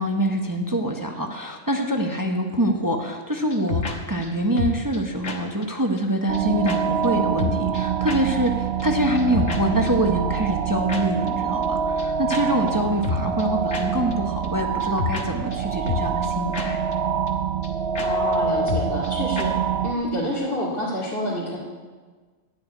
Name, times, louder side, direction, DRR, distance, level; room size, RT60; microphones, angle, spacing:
voice 1, 0.0-16.8, right 1 dB, 20° right, 2 dB, 0.8 m, -25 dB
sound 1, 3.5-3.9 4.2-4.3 4.6-5.0 5.2-5.4 5.6-5.7 6.0-6.1 6.3-6.4 6.7-6.8 7.0-7.1 7.4-8.2 8.5-8.6 8.8-8.9 9.1-9.6 9.9-10.0 10.9-11.0 11.3-11.4 11.6-11.7 12.0-12.1 12.3-12.4 12.7-12.8 13.0-13.4 13.7-13.8 14.1-14.2 14.4-14.5 14.8-15.2 15.5-15.6 15.9-16.3 16.5-16.7 16.9-17.0 17.3-17.4 17.6-17.7 17.9-18.1 18.3-18.4 18.7-19.1 19.4-19.5, left 5 dB, 75° left, 1.7 m, -28 dB
sound 2, 6.3-19.9, right 7 dB, 60° right, 0.7 m, -26 dB
voice 2, 18.0-19.5 19.8-21.6, left 1 dB, 45° left, -8 dB, 2.4 m, -27 dB
12.0 x 7.1 x 9.3 m, 1.4 s
omnidirectional pair, 1.3 m